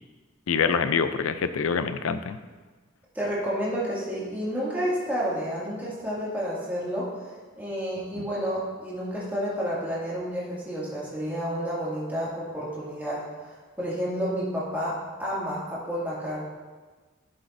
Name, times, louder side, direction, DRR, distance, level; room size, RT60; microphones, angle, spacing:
voice 1, 0.5-2.4 8.1-8.2, left 6 dB, 85° left, 11 dB, 0.5 m, -25 dB
voice 2, 3.1-7.1 7.6-16.4, equal, 10° right, -8 dB, 2.2 m, -30 dB
11.5 x 7.3 x 2.6 m, 1.4 s
head